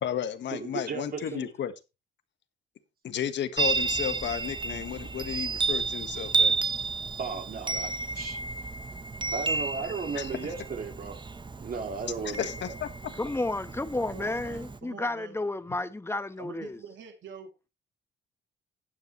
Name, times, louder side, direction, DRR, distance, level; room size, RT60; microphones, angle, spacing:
voice 1, 0.0-1.7 3.0-6.6 10.1-10.3 12.2-12.9, left 9 dB, 65° left, 1.5 m, -33 dB
voice 2, 0.5-1.5 7.2-8.4 9.3-11.2 11.6-12.7, right 5 dB, 50° right, 2.2 m, -35 dB
Chime, 3.6-14.8, right 4 dB, 25° right, 1.0 m, -32 dB
voice 3, 13.2-16.8, left 2 dB, 10° left, 1.1 m, -32 dB
voice 4, 14.0-15.4 16.4-17.5, right 7 dB, 70° right, 2.7 m, -45 dB
13.0 x 9.2 x 3.2 m
cardioid pair, 90°, 20 cm